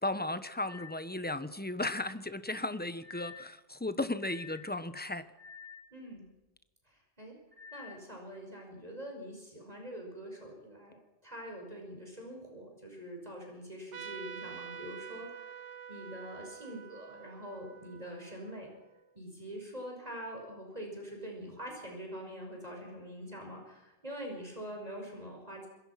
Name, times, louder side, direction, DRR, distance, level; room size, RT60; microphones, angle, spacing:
voice 1, 0.0-5.2, left 2 dB, 10° left, 11 dB, 1.0 m, -35 dB
sound 1, 0.7-1.0 3.0-3.6 4.2-4.7 5.4-5.9 7.5-8.0, left 6 dB, 10° right, 2.5 m, -49 dB
voice 2, 5.9-6.2 6.9-7.4 7.7-18.7 19.1-25.7, equal, 30° right, 1 dB, 5.7 m, -44 dB
Trumpet, 13.9-19.0, right 7 dB, 80° right, 1.3 m, -47 dB
25.5 x 22.0 x 5.9 m, 1.1 s
omnidirectional pair, 1.2 m